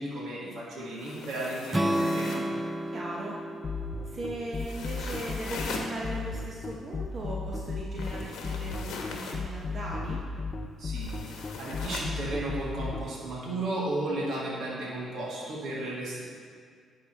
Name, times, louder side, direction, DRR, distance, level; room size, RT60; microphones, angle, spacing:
voice 1, 0.0-2.4 10.8-16.2, right 2 dB, 70° right, -6 dB, 2.0 m, -34 dB
sound 1, 0.9-2.5 4.5-5.9 7.9-9.4 11.0-12.1, left 4 dB, 85° left, 0.9 m, -40 dB
Strum, 1.7-5.9, right 1 dB, 15° right, 0.5 m, -32 dB
voice 2, 2.9-3.4 4.0-10.2, right 1 dB, 45° right, -3 dB, 0.9 m, -38 dB
sound 2, 3.6-13.0, left 4 dB, 45° left, 0.5 m, -34 dB
10.5 x 3.9 x 4.6 m, 2.1 s
cardioid pair, 90°, 0 cm